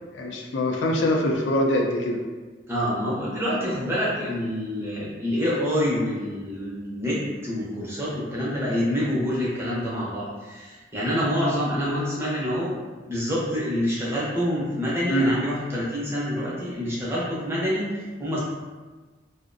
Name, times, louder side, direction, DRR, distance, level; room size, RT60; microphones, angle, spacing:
voice 1, 0.1-2.2 15.1-15.3, left 1 dB, 85° left, 1 dB, 0.4 m, -23 dB
voice 2, 2.7-12.8 13.1-18.4, equal, 15° right, -7 dB, 0.5 m, -27 dB
2.4 x 2.0 x 2.5 m, 1.3 s
head